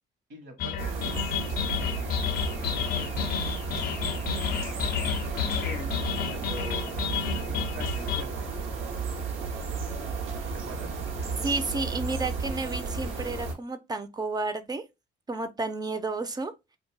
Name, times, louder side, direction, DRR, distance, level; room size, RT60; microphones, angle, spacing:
voice 1, 0.3-1.4 1.7-3.6 5.0-8.5 10.5-11.0, right 1 dB, 65° right, 1.0 m, -45 dB
sound 1, 0.6-8.2, left 8 dB, 50° left, 0.4 m, -31 dB
sound 2, 0.8-13.5, right 4 dB, 85° right, 0.7 m, -33 dB
voice 2, 11.4-14.8 15.3-16.5, right 3 dB, 20° right, 0.4 m, -31 dB
2.6 x 2.2 x 3.2 m
cardioid pair, 90°, 20 cm